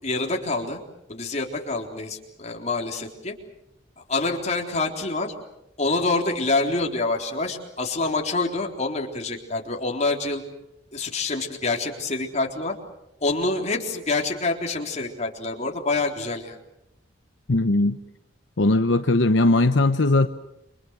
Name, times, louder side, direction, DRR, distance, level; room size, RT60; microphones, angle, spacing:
voice 1, 0.0-0.8 1.1-3.3 4.1-5.3 5.8-10.4 10.9-12.7 13.2-16.6, left 3 dB, 40° left, 1 dB, 3.9 m, -26 dB
voice 2, 17.5-18.0 18.6-20.3, left 2 dB, 75° left, 8 dB, 1.0 m, -19 dB
29.5 x 25.0 x 6.4 m, 0.85 s
head